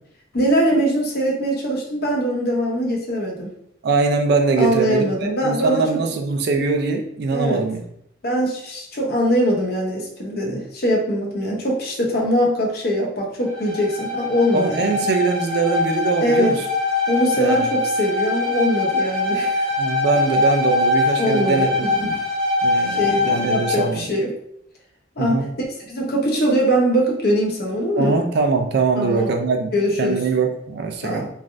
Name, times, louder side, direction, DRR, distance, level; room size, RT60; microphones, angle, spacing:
voice 1, 0.3-3.5 4.6-6.0 7.3-7.6 8.2-15.0 16.2-16.6 17.1-19.7 21.2-22.2 22.9-24.3 25.2-25.5 25.8-28.2 29.0-29.3 29.7-30.2 31.0-31.3, equal, 50° left, -1 dB, 0.7 m, -22 dB
voice 2, 3.8-7.8 14.5-16.6 17.4-17.6 19.8-21.9 22.6-24.0 25.2-25.5 28.0-29.7 30.0-31.3, right 4 dB, 55° right, 5 dB, 0.4 m, -22 dB
Bowed string instrument, 13.4-23.9, left 2 dB, 5° left, 0.6 m, -22 dB
3.2 x 2.4 x 2.5 m, 0.72 s
head